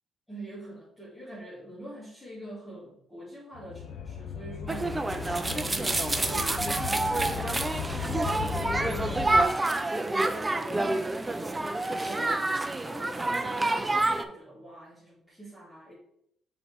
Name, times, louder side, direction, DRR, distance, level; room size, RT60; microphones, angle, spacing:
voice 1, 0.3-9.4 9.9-11.0 11.8-15.9, right 1 dB, 10° left, -9 dB, 2.1 m, -45 dB
sound 1, 3.5-9.4, left 7 dB, 80° left, 0.5 m, -36 dB
sound 2, 4.7-14.2, right 2 dB, 20° right, 0.5 m, -28 dB
6.4 x 3.2 x 4.6 m, 0.73 s
cardioid pair, 90°, 0 cm